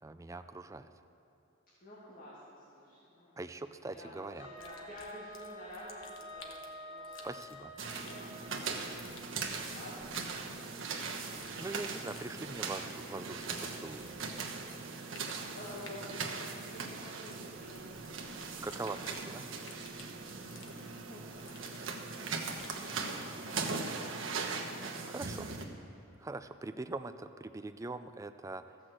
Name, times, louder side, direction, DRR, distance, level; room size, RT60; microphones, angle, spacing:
voice 1, 0.0-0.9 3.4-4.5 7.2-7.7 11.6-14.1 18.6-19.5 24.9-25.5 26.2-28.8, right 2 dB, 15° right, 9 dB, 0.3 m, -42 dB
voice 2, 1.8-3.3 3.9-7.3 7.8-10.1 10.3-10.4 11.1-11.7 15.5-17.8 20.8-24.6, left 1 dB, 40° left, -7 dB, 2.1 m, -51 dB
Wind instrument woodwind instrument, 4.4-9.1, equal, 90° left, 1.3 m, -49 dB
sound 1, 4.6-22.8, left 5 dB, 70° left, 1.3 m, -56 dB
sound 2, 7.8-25.6, right 4 dB, 65° right, 1.1 m, -40 dB
14.0 x 6.2 x 7.7 m, 2.9 s
head